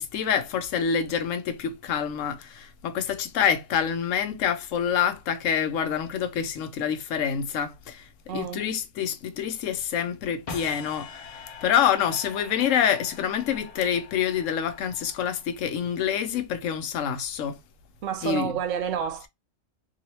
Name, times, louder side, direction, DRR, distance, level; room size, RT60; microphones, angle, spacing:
voice 1, 0.0-8.0 8.3-17.6 18.2-18.5, left 8 dB, 80° left, 1.0 m, -27 dB
voice 2, 8.3-8.7 18.0-19.3, right 8 dB, 85° right, 1.0 m, -29 dB
sound 1, 10.5-15.7, left 5 dB, 50° left, 0.4 m, -43 dB
3.0 x 2.6 x 2.8 m
omnidirectional pair, 1.3 m